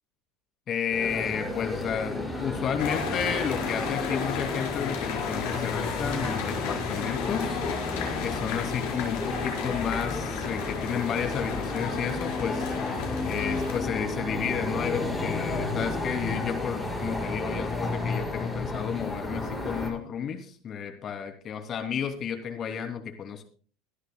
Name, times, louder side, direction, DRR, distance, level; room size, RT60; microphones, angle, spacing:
voice 1, 0.7-7.6 8.2-12.7 13.2-23.4, left 7 dB, 40° left, 5 dB, 2.8 m, -32 dB
sound 1, 0.9-19.9, left 2 dB, 5° left, 5.3 m, -32 dB
sound 2, 2.8-13.8, left 7 dB, 65° left, 4.5 m, -34 dB
24.0 x 11.5 x 2.3 m, 0.41 s
hypercardioid pair, 75°, 0 cm